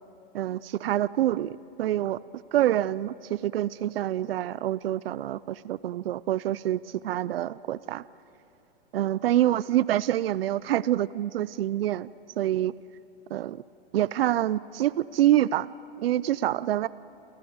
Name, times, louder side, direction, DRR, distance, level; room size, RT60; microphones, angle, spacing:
voice 1, 0.3-2.2 2.5-8.0 8.9-12.1 12.4-12.7 13.3-13.6 13.9-15.8 16.0-16.9, right 13 dB, 75° right, 19 dB, 0.6 m, -26 dB
29.5 x 25.0 x 8.0 m, 3.0 s
hypercardioid pair, 140°, 30 cm